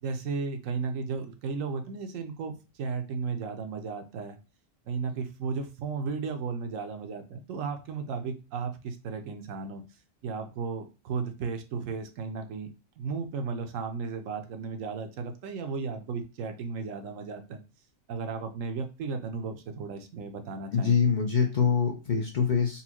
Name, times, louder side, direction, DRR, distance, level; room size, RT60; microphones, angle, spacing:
voice 1, 0.0-4.4 4.9-9.8 10.2-12.7 13.0-17.6 18.1-21.0, right 5 dB, 80° right, 6 dB, 1.0 m, -34 dB
voice 2, 20.7-22.8, left 6 dB, 50° left, 1 dB, 0.6 m, -24 dB
4.1 x 2.2 x 2.9 m, 0.30 s
omnidirectional pair, 1.3 m